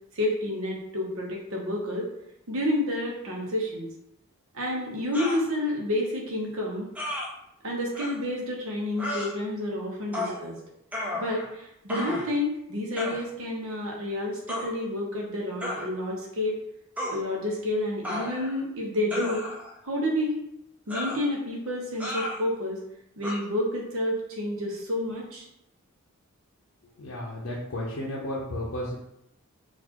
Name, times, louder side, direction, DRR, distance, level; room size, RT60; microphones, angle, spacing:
voice 1, 0.1-2.1 2.5-3.9 4.5-6.9 7.6-10.6 11.1-16.6 17.1-19.4 19.8-20.4 20.9-22.8 23.2-25.4, left 1 dB, 65° right, -1 dB, 0.9 m, -29 dB
sound 1, 5.1-5.4 6.9-7.3 7.9-8.1 9.0-9.3 10.1-10.4 10.9-11.5 11.9-12.3 13.0-13.2 14.5-14.7 15.6-15.9 17.0-17.2 18.0-18.6 19.1-19.7 20.9-21.2 22.0-22.4 23.2-23.4, left 1 dB, 5° right, 0.4 m, -33 dB
voice 2, 27.0-29.0, left 1 dB, 60° left, -6 dB, 0.6 m, -33 dB
4.0 x 2.4 x 2.9 m, 0.79 s
head